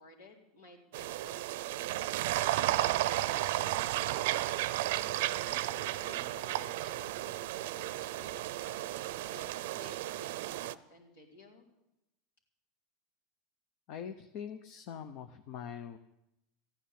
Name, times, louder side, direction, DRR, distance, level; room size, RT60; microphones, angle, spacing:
voice 1, 0.0-11.6, left 1 dB, 85° left, -1 dB, 4.3 m, -56 dB
sound 1, 0.9-10.7, right 15 dB, 75° right, 0.5 m, -33 dB
voice 2, 13.9-16.0, left 8 dB, 60° left, 8 dB, 0.9 m, -43 dB
14.5 x 10.0 x 8.6 m, 0.88 s
supercardioid pair, 115°, 0 cm